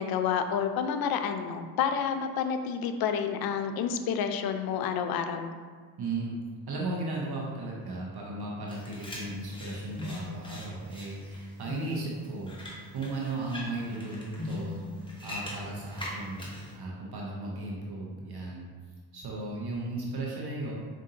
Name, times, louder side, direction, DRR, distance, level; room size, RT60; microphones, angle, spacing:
voice 1, 0.0-5.5, left 7 dB, 50° left, 7 dB, 0.4 m, -29 dB
voice 2, 6.0-6.4 6.7-12.6 12.9-18.7 19.1-20.7, right 2 dB, 50° right, -3 dB, 0.9 m, -36 dB
sound 1, 8.7-16.7, left 2 dB, 10° left, 1.0 m, -41 dB
4.7 x 2.5 x 2.8 m, 1.5 s
supercardioid pair, 50°, 49 cm